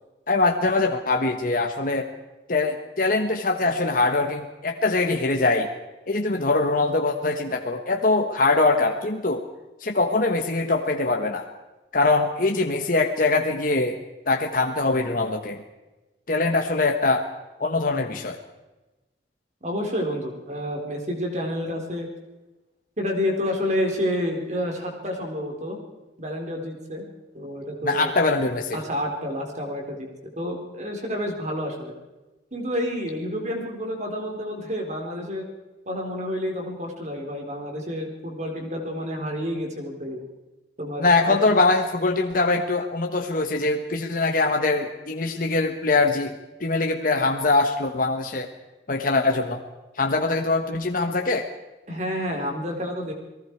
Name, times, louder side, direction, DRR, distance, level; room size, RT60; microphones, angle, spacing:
voice 1, 0.3-2.1 2.5-5.7 6.1-9.4 9.8-11.5 11.9-14.0 14.3-15.6 16.3-17.3 17.6-18.4 27.8-28.8 41.0-46.3 46.6-48.5 48.9-49.6 49.9-51.5, left 3 dB, 50° left, 3 dB, 1.3 m, -22 dB
voice 2, 19.6-22.1 23.0-25.8 26.2-27.0 27.3-28.1 28.7-30.1 30.4-31.9 32.5-35.5 35.9-40.3 40.8-41.4 51.9-53.1, equal, 40° right, 2 dB, 4.1 m, -29 dB
29.0 x 19.0 x 4.7 m, 1.1 s
head